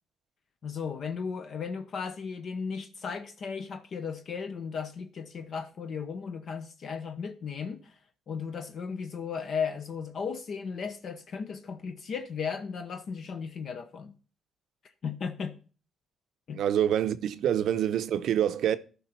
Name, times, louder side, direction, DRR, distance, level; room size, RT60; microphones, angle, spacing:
voice 1, 0.6-8.0 8.3-14.1 15.0-15.6 16.5-16.6, left 6 dB, 60° left, 0.8 m, -35 dB
voice 2, 16.5-18.8, right 10 dB, 75° right, 0.6 m, -26 dB
13.5 x 5.4 x 4.4 m
cardioid pair, 100°, 0 cm